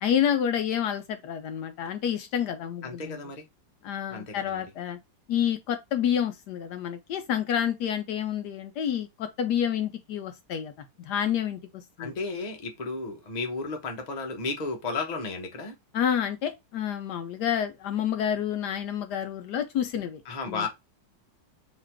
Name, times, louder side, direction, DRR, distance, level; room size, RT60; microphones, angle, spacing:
voice 1, 0.0-3.2 3.8-5.0 5.3-10.7 11.0-12.1 15.9-20.2 20.5-20.7, left 9 dB, 75° left, 1.1 m, -29 dB
voice 2, 2.8-3.5 4.1-4.6 12.0-15.7 20.2-20.7, left 3 dB, 30° left, 0.8 m, -33 dB
4.1 x 3.0 x 4.4 m
omnidirectional pair, 2.0 m